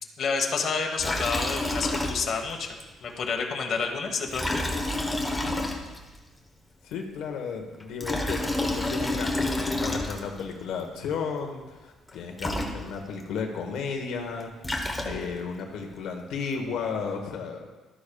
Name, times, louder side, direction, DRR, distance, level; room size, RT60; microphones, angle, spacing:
voice 1, 0.2-2.8 3.0-4.5, left 5 dB, 45° left, 2 dB, 1.2 m, -29 dB
Liquid, 1.0-2.5 2.8-2.9 4.3-6.2 7.8-10.5 12.1-12.2 12.4-13.2 14.4-15.5, left 1 dB, 10° left, 1.0 m, -29 dB
voice 2, 6.8-17.7, left 5 dB, 85° left, 2 dB, 1.1 m, -34 dB
12.5 x 9.9 x 2.3 m, 1.2 s
cardioid pair, 145°, 0 cm